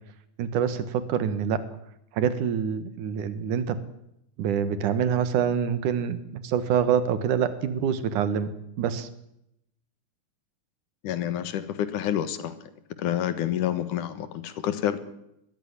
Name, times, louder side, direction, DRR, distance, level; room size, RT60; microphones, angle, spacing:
voice 1, 0.4-1.6 2.1-3.8 4.4-9.1, right 8 dB, 90° right, 13 dB, 3.0 m, -26 dB
voice 2, 11.0-12.5 13.0-15.0, left 11 dB, 85° left, 13 dB, 2.9 m, -28 dB
20.5 x 14.0 x 10.0 m, 0.80 s
omnidirectional pair, 3.5 m